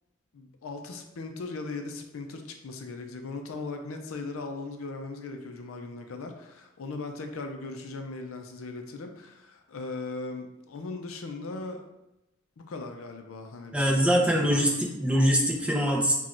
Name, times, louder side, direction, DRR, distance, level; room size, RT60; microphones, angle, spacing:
voice 1, 0.3-11.8 12.6-14.7, left 3 dB, 80° left, 4 dB, 0.5 m, -38 dB
voice 2, 13.7-16.1, equal, 5° right, -2 dB, 0.6 m, -23 dB
5.8 x 2.3 x 2.5 m, 0.93 s
head